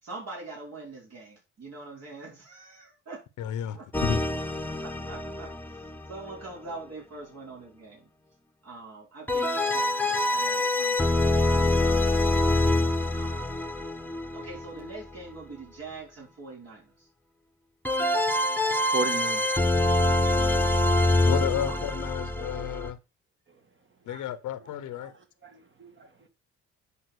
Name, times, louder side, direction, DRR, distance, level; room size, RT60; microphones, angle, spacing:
voice 1, 0.0-3.2 3.7-3.8 4.8-8.1 8.6-12.5 13.1-13.6 14.3-17.1 21.6-21.8, right 3 dB, 55° right, 5.1 m, -44 dB
voice 2, 3.4-4.2 21.3-23.0 24.0-25.1, left 10 dB, 80° left, 1.1 m, -32 dB
sound 1, 3.9-6.7 9.3-15.0 17.8-22.9, left 2 dB, 5° left, 1.2 m, -25 dB
voice 3, 18.9-19.5 24.1-24.2 25.0-25.1 25.4-26.1, right 3 dB, 40° right, 2.1 m, -34 dB
8.3 x 5.3 x 6.4 m
cardioid pair, 90°, 30 cm